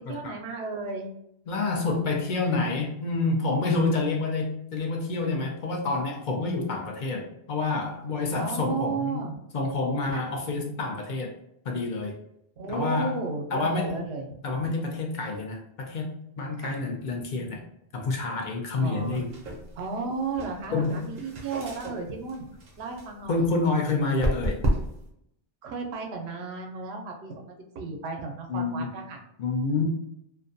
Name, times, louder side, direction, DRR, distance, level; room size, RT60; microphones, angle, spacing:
voice 1, 0.1-1.1 8.4-9.4 10.1-10.3 12.6-14.3 16.6-16.8 18.8-19.2 19.8-22.5 22.8-23.4 25.6-29.2, right 4 dB, 85° right, 2 dB, 0.8 m, -34 dB
voice 2, 1.5-9.2 9.5-11.3 11.7-12.2 12.7-13.2 13.5-14.0 14.4-17.6 17.9-19.3 20.7-21.0 23.3-24.6 28.5-28.9 29.4-29.8, left 3 dB, 60° left, 1 dB, 0.6 m, -28 dB
sound 1, 19.0-25.1, right 1 dB, 60° right, 0.7 m, -33 dB
2.4 x 2.2 x 2.5 m, 0.76 s
omnidirectional pair, 1.0 m